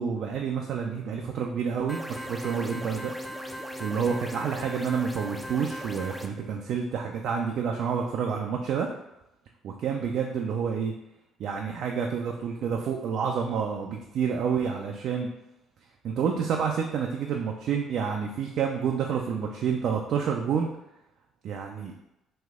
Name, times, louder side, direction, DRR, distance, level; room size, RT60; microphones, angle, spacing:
voice 1, 0.0-3.1 3.8-8.9 9.6-10.9 11.4-15.3 16.0-20.7 21.4-21.9, right 6 dB, 65° right, 1 dB, 0.4 m, -29 dB
sound 1, 1.9-6.3, equal, ahead, 0.5 m, -38 dB
3.1 x 2.7 x 3.5 m, 0.88 s
hypercardioid pair, 55°, 0 cm